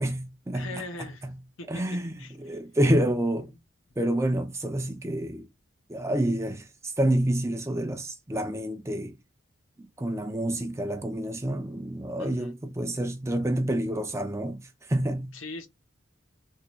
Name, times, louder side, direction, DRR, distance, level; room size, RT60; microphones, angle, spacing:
voice 1, 0.0-1.4 1.7-3.5 4.0-5.5 5.9-6.7 7.0-9.1 10.0-15.4, right 1 dB, 15° right, 0.5 m, -28 dB
voice 2, 0.5-1.2 1.6-1.8 2.2-2.4 3.5-3.6 12.2-12.5 15.3-15.7, left 3 dB, 70° left, 0.8 m, -40 dB
3.6 x 2.3 x 3.0 m
head